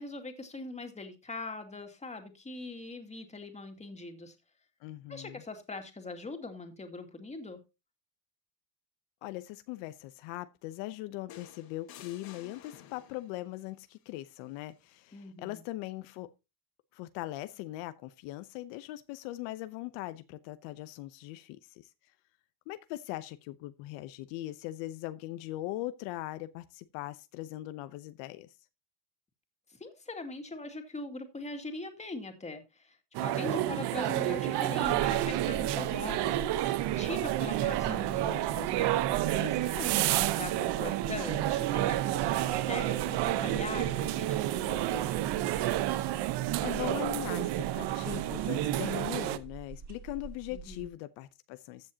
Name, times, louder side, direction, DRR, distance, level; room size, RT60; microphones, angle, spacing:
voice 1, 0.0-4.3 5.1-7.6 15.1-15.6 29.8-33.0 33.2-45.1 50.5-50.9, left 2 dB, 15° left, 2.3 m, -41 dB
voice 2, 4.8-5.4 9.2-16.3 16.9-21.9 22.7-28.5 46.6-51.9, left 16 dB, 75° left, 0.9 m, -40 dB
sound 1, 11.3-13.4 14.8-15.1, left 10 dB, 50° left, 1.9 m, -52 dB
sound 2, 33.1-49.4, right 14 dB, 60° right, 1.0 m, -30 dB
sound 3, 34.8-50.9, right 4 dB, 35° right, 2.4 m, -45 dB
14.5 x 7.5 x 2.9 m
supercardioid pair, 110°, 45 cm